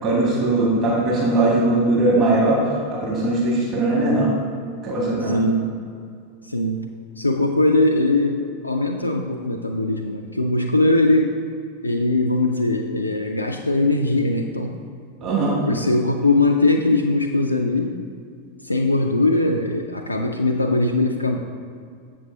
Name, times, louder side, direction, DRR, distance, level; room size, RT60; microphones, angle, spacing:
voice 1, 0.0-2.6 2.9-4.3 4.8-5.4 15.2-15.6, right 2 dB, 30° right, -5 dB, 1.7 m, -20 dB
voice 2, 5.3-5.7 6.4-6.8 7.2-11.3 11.8-14.7 15.7-17.9 18.6-21.4, left 2 dB, 85° left, 3 dB, 0.4 m, -20 dB
7.8 x 6.2 x 3.3 m, 2.3 s
figure-of-eight pair, 90°, 0 cm